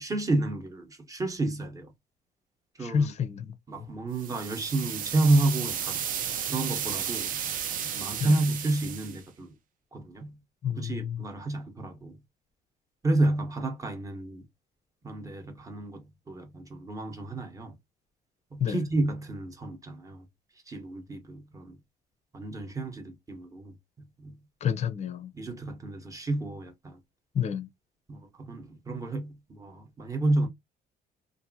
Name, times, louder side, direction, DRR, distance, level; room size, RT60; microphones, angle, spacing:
voice 1, 0.0-1.9 2.8-3.1 3.7-6.0 6.5-7.6 7.8-9.5 9.9-10.4 10.8-12.2 13.0-14.4 15.0-17.7 18.5-20.2 20.7-21.8 22.3-24.4 25.3-27.0 28.1-30.5, right 2 dB, 20° right, 0.9 m, -30 dB
voice 2, 2.8-3.9 8.2-8.3 10.6-11.2 18.6-18.8 24.6-25.3 27.3-27.7, left 7 dB, 40° left, 0.5 m, -29 dB
sound 1, 4.2-9.2, right 9 dB, 55° right, 0.5 m, -33 dB
2.8 x 2.5 x 2.6 m
cardioid pair, 110°, 17 cm